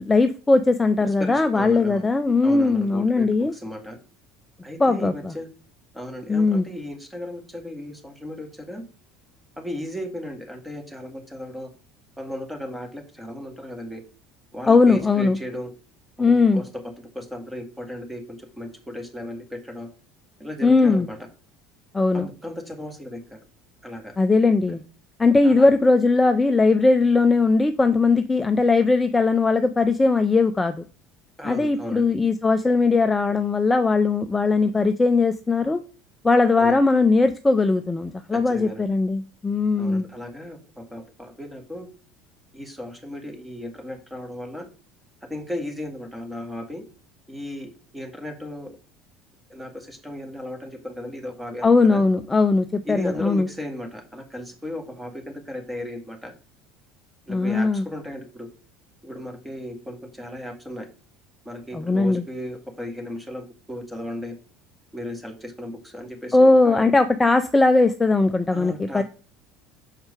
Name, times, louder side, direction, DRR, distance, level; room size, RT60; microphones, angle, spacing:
voice 1, 0.0-3.5 4.8-5.3 6.3-6.6 14.7-15.4 16.2-16.6 20.6-21.1 21.9-22.3 24.2-24.8 25.2-30.8 31.4-35.8 36.2-40.0 51.6-53.5 57.3-57.8 61.7-62.2 66.3-69.0, left 3 dB, 15° left, 8 dB, 0.6 m, -19 dB
voice 2, 1.2-2.1 2.4-4.0 4.6-5.5 5.9-8.8 9.6-11.7 12.2-14.0 14.5-15.7 16.2-16.7 17.0-19.9 20.4-21.2 22.1-23.4 23.8-24.2 25.4-25.7 31.4-32.0 36.6-36.8 38.3-38.9 39.8-41.9 42.5-44.7 45.3-46.8 47.3-48.7 49.5-52.0 52.8-56.3 57.3-58.5 59.0-60.9 61.5-64.4 64.9-66.9 68.5-69.0, left 1 dB, 10° right, 4 dB, 2.0 m, -35 dB
6.6 x 4.5 x 4.9 m, 0.36 s
figure-of-eight pair, 65°, 0 cm